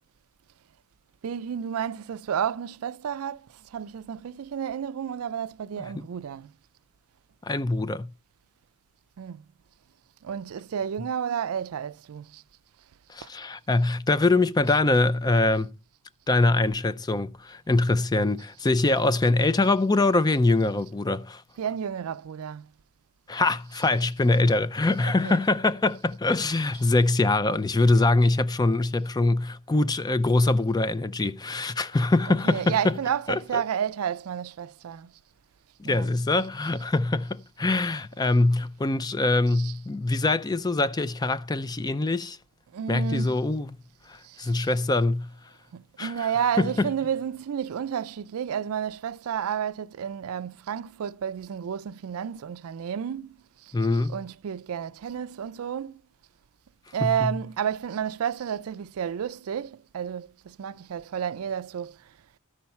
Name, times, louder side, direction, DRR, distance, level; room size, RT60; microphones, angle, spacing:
voice 1, 1.2-6.5 9.2-9.4 10.2-12.4 13.2-13.3 18.6-18.7 21.6-22.7 23.7-23.9 25.0-25.4 26.7-26.9 32.3-35.1 35.8-36.1 39.5-39.8 42.7-43.4 44.2-44.7 45.7-53.7 54.1-56.0 56.9-62.0, right 8 dB, 70° right, 0.4 m, -31 dB
voice 2, 7.4-8.1 13.1-15.7 16.3-21.4 23.3-33.0 33.3-33.6 35.8-42.4 42.9-43.8 44.1-45.3 46.0-46.3 46.6-46.9 53.7-54.2 57.0-57.3, left 2 dB, 20° left, 0.4 m, -23 dB
12.5 x 5.8 x 4.2 m
head